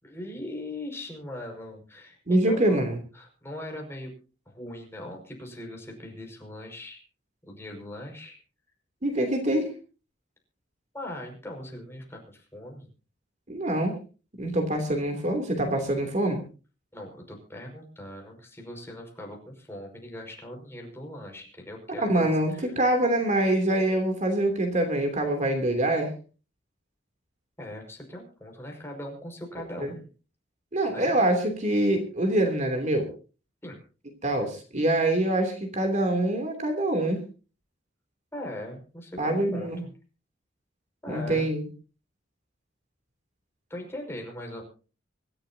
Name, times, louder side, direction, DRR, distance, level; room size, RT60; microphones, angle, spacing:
voice 1, 0.0-4.1 4.5-7.0 7.5-8.4 10.9-12.9 16.9-22.7 27.6-30.1 30.9-31.1 33.6-33.8 38.3-39.9 41.0-41.5 43.7-44.6, left 1 dB, 15° left, 1 dB, 5.7 m, -40 dB
voice 2, 2.3-3.0 9.0-9.7 13.5-14.0 14.4-16.4 22.0-26.1 29.8-29.9 30.7-33.1 34.2-37.2 39.2-39.8 41.1-41.7, right 1 dB, 40° right, 5 dB, 3.1 m, -25 dB
25.5 x 13.5 x 2.9 m, 0.36 s
head